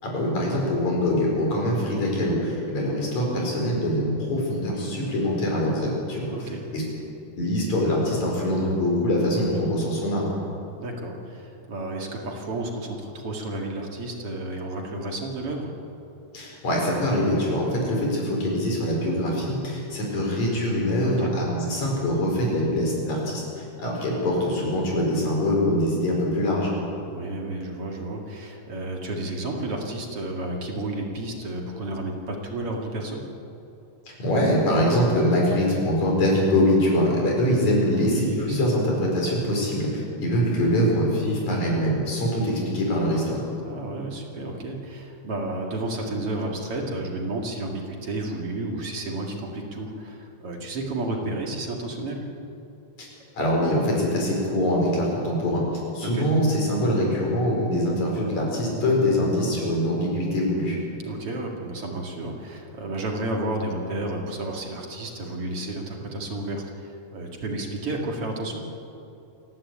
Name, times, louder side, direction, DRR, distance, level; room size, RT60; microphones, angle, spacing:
voice 1, 0.0-6.8 7.4-10.3 16.3-26.7 34.2-43.5 53.0-53.1 53.3-55.6 55.9-60.8, left 1 dB, 70° left, -2 dB, 6.3 m, -23 dB
voice 2, 6.3-6.7 10.8-15.7 21.0-21.4 27.1-33.2 37.9-38.8 43.6-52.3 56.0-56.3 61.0-68.6, right 2 dB, 50° right, 0 dB, 3.0 m, -32 dB
29.0 x 11.5 x 8.8 m, 2.7 s
omnidirectional pair, 3.3 m